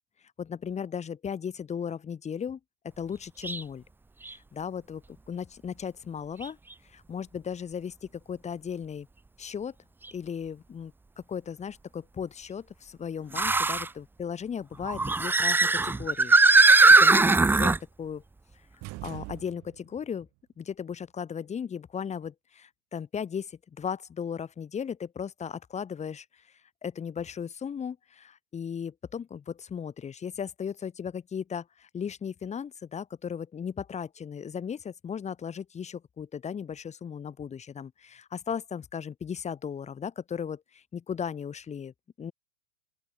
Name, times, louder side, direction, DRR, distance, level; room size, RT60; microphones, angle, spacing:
voice 1, 0.4-2.6 3.0-3.8 4.3-6.6 6.9-9.1 9.4-9.7 10.1-10.9 11.3-18.2 19.0-20.3 20.6-26.4 26.8-42.3, left 7 dB, 15° left, 1.9 m, -36 dB
sound 1, 3.4-3.6 4.3-4.4 6.4-6.5 10.0-10.1 13.3-13.9 14.8-17.8, right 3 dB, 5° right, 0.8 m, -20 dB
sound 2, 18.8-20.0, right 21 dB, 40° right, 5.1 m, -42 dB
open air
figure-of-eight pair, 95°, 42 cm